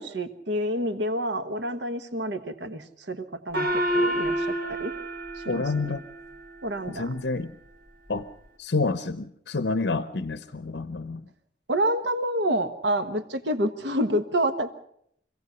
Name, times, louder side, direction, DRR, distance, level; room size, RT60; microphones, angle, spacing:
voice 1, 0.0-4.9 5.3-5.9 6.6-7.1 11.7-14.7, right 1 dB, 90° right, 9 dB, 1.3 m, -28 dB
Gong, 3.5-6.4, right 1 dB, 70° right, 3.5 m, -28 dB
voice 2, 5.5-6.0 6.9-7.6 8.1-8.3 8.6-11.3, left 3 dB, 75° left, 12 dB, 0.7 m, -28 dB
26.0 x 16.5 x 7.0 m, 0.72 s
head